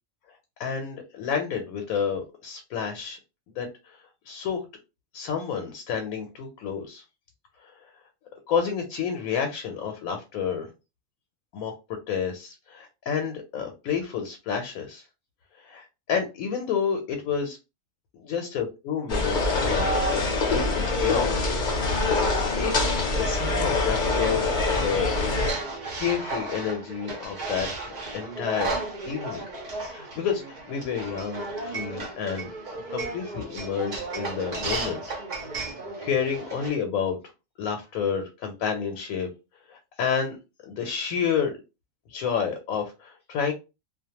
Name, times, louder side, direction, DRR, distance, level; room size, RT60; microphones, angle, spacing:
voice 1, 0.6-3.2 3.6-4.0 4.3-4.6 5.1-7.0 7.6-7.9 8.5-10.7 11.5-11.7 12.1-15.0 15.6-17.6 18.1-21.5 22.6-22.9 23.2-24.4 24.8-25.1 26.0-28.8 29.1-32.5 32.9-35.0 35.6-35.7 36.0-37.2 37.6-39.3 39.7-40.4 40.6-41.6 42.1-43.5, left 7 dB, 85° left, 4 dB, 1.0 m, -30 dB
sound 1, 19.1-25.5, left 3 dB, 45° left, 0.7 m, -24 dB
sound 2, 24.0-36.7, right 2 dB, 45° right, 0.6 m, -34 dB
2.4 x 2.1 x 2.8 m, 0.28 s
omnidirectional pair, 1.4 m